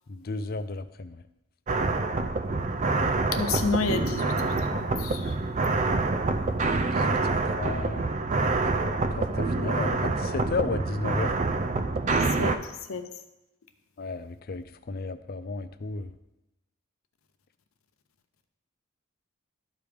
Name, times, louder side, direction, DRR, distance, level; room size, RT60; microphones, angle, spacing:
voice 1, 0.1-1.2 6.8-7.2 7.6-8.2 8.7-11.3 14.0-16.1, left 3 dB, 45° left, 12 dB, 0.4 m, -34 dB
sound 1, 1.7-12.6, right 3 dB, 35° right, 0.4 m, -26 dB
voice 2, 3.3-5.3 12.1-13.0, left 4 dB, 80° left, 7 dB, 0.8 m, -31 dB
13.0 x 4.9 x 3.5 m, 0.93 s
head